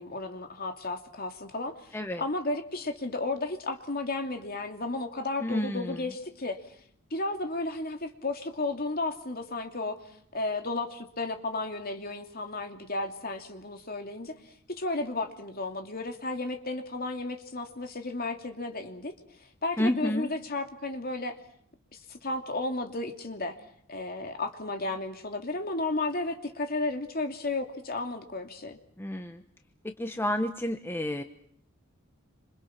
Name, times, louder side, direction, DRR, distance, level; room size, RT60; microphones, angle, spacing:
voice 1, 0.0-6.6 7.1-10.0 10.3-14.4 14.7-19.1 19.6-21.4 22.1-23.6 23.9-28.8, left 2 dB, 45° left, 5 dB, 2.8 m, -33 dB
voice 2, 5.4-6.0 19.8-20.3 29.0-29.4 30.0-31.2, left 1 dB, 10° left, 6 dB, 1.1 m, -30 dB
27.5 x 27.0 x 5.9 m, 0.65 s
head